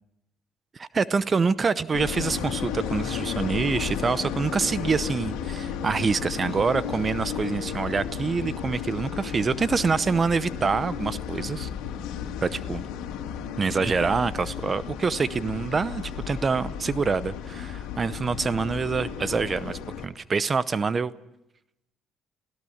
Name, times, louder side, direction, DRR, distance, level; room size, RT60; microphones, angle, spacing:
voice 1, 0.7-11.7 12.4-12.8 13.6-21.1, right 5 dB, 35° right, 16 dB, 0.7 m, -26 dB
sound 1, 1.9-20.1, left 8 dB, 85° left, 2.3 m, -33 dB
24.5 x 17.0 x 7.2 m, 0.88 s
cardioid pair, 85°, 0 cm